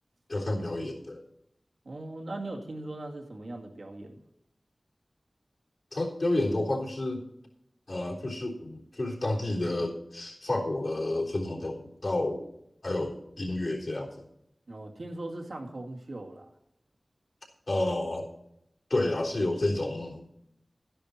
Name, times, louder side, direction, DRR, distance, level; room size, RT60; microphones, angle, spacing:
voice 1, 0.3-1.2 5.9-7.2 7.9-12.5 12.8-14.2 17.7-18.3 18.9-20.2, left 2 dB, 65° left, -3 dB, 3.6 m, -30 dB
voice 2, 1.8-4.2 14.7-16.5, right 2 dB, 80° right, 0 dB, 2.1 m, -39 dB
12.5 x 10.0 x 4.3 m, 0.78 s
wide cardioid pair, 45°, 0 cm